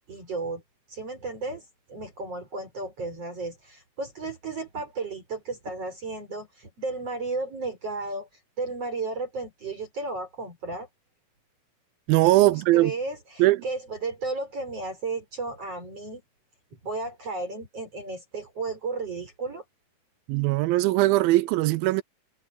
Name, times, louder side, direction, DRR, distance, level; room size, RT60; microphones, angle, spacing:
voice 1, 0.1-0.6 0.9-8.3 8.6-10.9 12.4-16.2 16.8-19.6, right 3 dB, 40° right, 6.2 m, -34 dB
voice 2, 12.1-12.9 13.4-13.6 20.3-22.0, right 18 dB, 85° right, 2.5 m, -20 dB
omnidirectional pair, 4.1 m